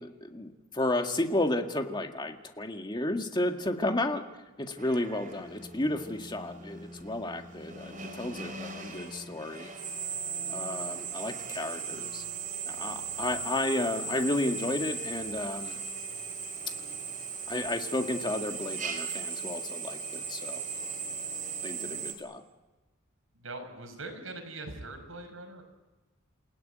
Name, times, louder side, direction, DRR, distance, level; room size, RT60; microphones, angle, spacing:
voice 1, 0.0-4.2 4.6-9.7 10.5-12.2 12.7-15.8 17.5-20.6 21.6-22.4, left 1 dB, 20° left, 4 dB, 1.9 m, -32 dB
Drill, 4.8-22.1, right 5 dB, 40° right, 4.4 m, -38 dB
voice 2, 23.3-25.6, right 2 dB, 85° right, 5 dB, 5.7 m, -42 dB
28.5 x 17.0 x 9.3 m, 1.1 s
head